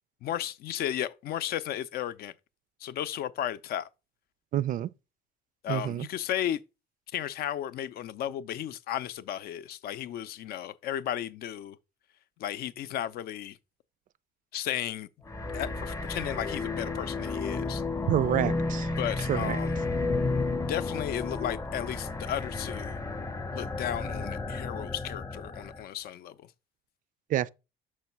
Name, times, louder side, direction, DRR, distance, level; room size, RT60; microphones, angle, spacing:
voice 1, 0.2-2.3 2.8-3.9 5.6-6.6 7.1-11.8 12.4-13.6 14.5-15.1 15.5-17.8 19.0-19.8 20.7-23.0 23.5-26.5, left 11 dB, 65° left, 0.5 m, -34 dB
voice 2, 4.5-4.9 5.7-6.1 18.1-18.9 19.3-19.6 27.3-27.5, right 12 dB, 50° right, 0.4 m, -28 dB
sound 1, 15.3-25.8, left 3 dB, 20° left, 0.6 m, -32 dB
6.3 x 3.1 x 5.8 m
cardioid pair, 110°, 17 cm